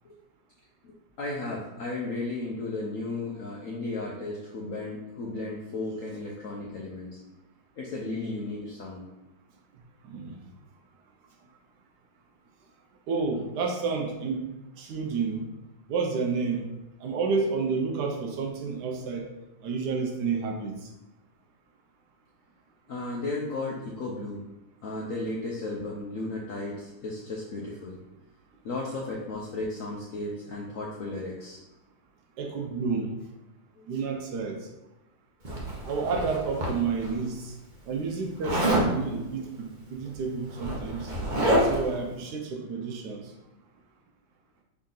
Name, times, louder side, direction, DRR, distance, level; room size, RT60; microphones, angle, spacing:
voice 1, 0.8-7.2 7.8-9.1 22.9-24.5 24.8-28.0 28.6-31.6 33.7-33.8 39.4-39.5, left 2 dB, 75° left, -3 dB, 0.7 m, -34 dB
voice 2, 13.1-14.5 14.8-15.5 15.9-16.6 17.0-19.3 19.6-20.7 32.4-33.1 33.9-34.7 35.8-37.5 37.9-41.1 41.6-43.3, right 4 dB, 70° right, 2 dB, 1.0 m, -30 dB
Zipper (clothing), 35.4-37.1 38.4-38.9 40.1-40.2 40.5-41.9, right 1 dB, 40° right, 0.7 m, -27 dB
4.0 x 3.6 x 3.7 m, 0.99 s
omnidirectional pair, 2.1 m